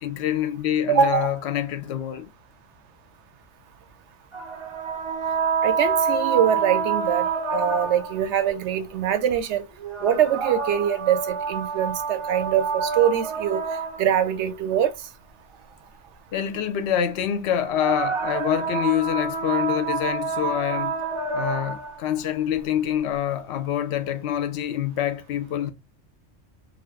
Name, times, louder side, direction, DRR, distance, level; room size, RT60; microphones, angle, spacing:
voice 1, 0.0-2.3 16.3-21.0 21.3-25.7, left 10 dB, 65° left, 0.8 m, -26 dB
voice 2, 0.9-1.3 5.6-9.6 10.0-13.6 14.0-14.9, right 9 dB, 70° right, 0.8 m, -23 dB
sound 1, 4.3-8.3 9.8-14.3 17.5-22.0, right 5 dB, 40° right, 0.4 m, -27 dB
2.8 x 2.6 x 3.2 m
omnidirectional pair, 1.3 m